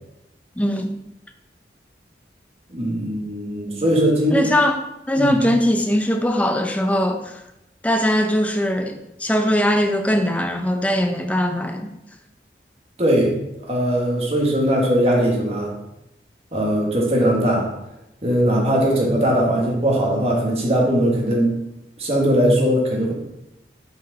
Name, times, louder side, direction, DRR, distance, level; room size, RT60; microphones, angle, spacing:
voice 1, 0.6-1.0 4.3-4.8 5.1-7.4 7.8-11.9, left 1 dB, 10° left, 5 dB, 0.5 m, -20 dB
voice 2, 2.7-4.5 5.2-5.4 13.0-13.3 13.7-15.7 16.5-17.7 18.2-21.6 22.0-23.1, equal, 35° right, -2 dB, 1.5 m, -19 dB
6.1 x 4.8 x 4.0 m, 0.86 s
head